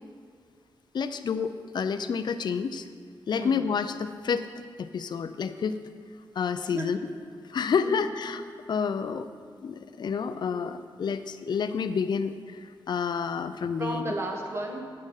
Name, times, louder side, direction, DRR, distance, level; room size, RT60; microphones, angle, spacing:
voice 1, 0.9-2.9 3.3-4.5 4.8-5.8 6.3-7.0 7.5-8.4 8.7-9.3 9.6-14.1, left 6 dB, 60° left, 10 dB, 0.4 m, -29 dB
voice 2, 3.3-3.7 6.7-6.9 7.8-8.1 13.8-14.8, right 1 dB, 30° right, 1 dB, 1.5 m, -33 dB
8.7 x 6.3 x 5.6 m, 2.1 s
cardioid pair, 70°, 9 cm